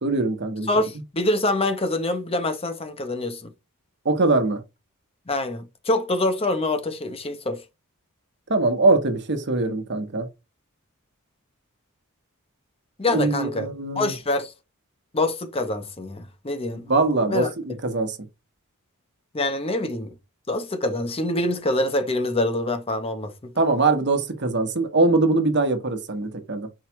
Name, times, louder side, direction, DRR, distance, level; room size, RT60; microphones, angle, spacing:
voice 1, 0.0-0.7 4.0-4.6 8.5-10.3 13.1-14.1 16.9-18.2 23.6-26.7, right 3 dB, 50° right, 1.1 m, -22 dB
voice 2, 0.7-3.5 5.3-7.6 13.0-13.7 14.0-14.5 15.1-16.8 17.3-17.5 19.3-20.1 20.5-23.5, left 2 dB, 25° left, 0.8 m, -25 dB
4.7 x 2.4 x 4.4 m
head